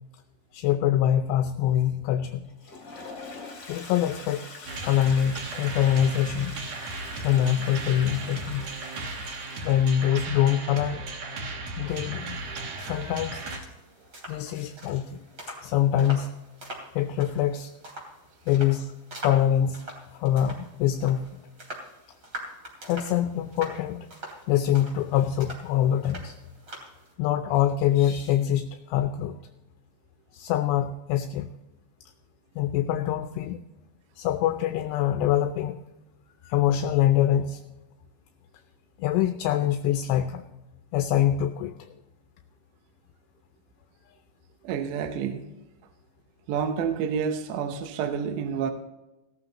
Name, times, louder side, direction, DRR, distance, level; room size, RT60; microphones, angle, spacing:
voice 1, 0.5-2.4 3.7-4.4 4.8-6.5 7.2-8.6 9.6-11.0 11.8-12.4 12.8-13.4 14.3-16.3 17.0-17.7 18.5-18.9 19.2-19.8 20.1-21.4 22.9-24.1 24.5-26.4 27.2-29.4 30.3-31.5 32.6-33.6 34.2-35.8 36.4-37.6 39.0-40.4 40.9-41.7, left 11 dB, 80° left, 7 dB, 2.6 m, -24 dB
Toilet flush, 2.4-10.1, left 3 dB, 30° left, 2.3 m, -44 dB
sound 1, 4.6-13.6, right 3 dB, 60° right, 1.8 m, -36 dB
sound 2, 12.2-27.1, right 1 dB, 25° right, 3.2 m, -44 dB
voice 2, 44.6-45.4 46.5-48.7, right 7 dB, 80° right, 6 dB, 3.0 m, -29 dB
17.0 x 12.5 x 2.9 m, 0.99 s
omnidirectional pair, 5.3 m